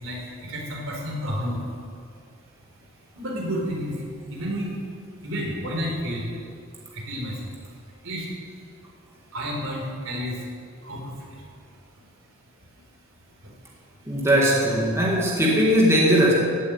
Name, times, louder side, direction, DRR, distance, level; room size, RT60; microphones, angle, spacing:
voice 1, 0.0-1.6 3.2-3.9 4.3-4.8 5.2-6.3 6.9-7.3 8.0-8.3 9.3-10.4 10.8-11.0, equal, 65° right, -1 dB, 4.3 m, -30 dB
voice 2, 14.1-16.3, equal, 15° right, -4 dB, 2.2 m, -19 dB
16.0 x 8.4 x 9.3 m, 2.3 s
head